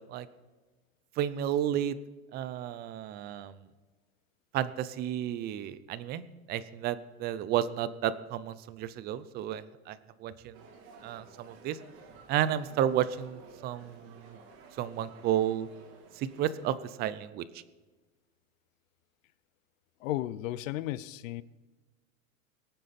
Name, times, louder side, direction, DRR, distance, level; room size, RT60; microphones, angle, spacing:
voice 1, 1.2-2.0 2.3-3.5 4.5-10.5 11.0-11.8 12.3-14.4 14.8-15.7 16.2-17.4, right 11 dB, 25° right, 0.5 m, -32 dB
sound 1, 10.5-16.8, right 5 dB, 45° right, 2.8 m, -54 dB
voice 2, 20.0-21.4, left 14 dB, 65° left, 0.8 m, -34 dB
22.5 x 9.2 x 4.3 m
supercardioid pair, 145°, 42 cm